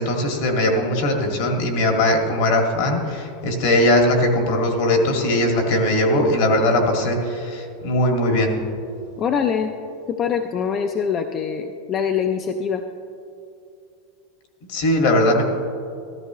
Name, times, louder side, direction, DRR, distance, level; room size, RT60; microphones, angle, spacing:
voice 1, 0.0-8.6 14.7-15.4, left 1 dB, 60° left, 2 dB, 1.9 m, -20 dB
voice 2, 9.2-9.7 10.1-12.8, left 7 dB, 25° left, 6 dB, 0.4 m, -23 dB
14.5 x 13.5 x 3.0 m, 2.5 s
supercardioid pair, 165°, 0 cm